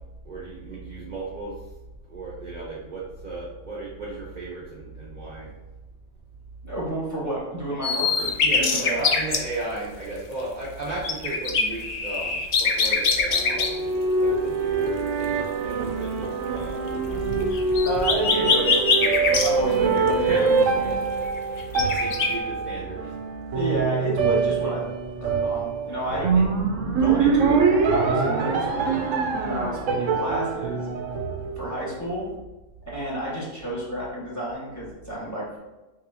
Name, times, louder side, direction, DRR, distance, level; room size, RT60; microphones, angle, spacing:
voice 1, 0.2-1.6 2.1-5.5 8.4-17.3 19.0-19.6 20.1-20.6 21.8-23.2 26.1-26.3, right 2 dB, 45° right, -4 dB, 0.7 m, -35 dB
voice 2, 6.6-9.1 17.8-19.1 19.4-20.9 23.5-24.9 25.2-26.5 26.9-27.6 27.9-29.0 29.4-30.8 31.6-32.3 32.9-35.6, right 1 dB, 15° left, -6 dB, 1.2 m, -30 dB
sound 1, 7.8-9.4 10.7-13.7 16.6-20.2 20.9-21.0 21.3-22.3, left 5 dB, 80° left, 0.3 m, -23 dB
sound 2, 13.3-31.9, right 4 dB, 70° right, 0.9 m, -24 dB
5.8 x 2.7 x 2.6 m, 1.1 s
omnidirectional pair, 1.4 m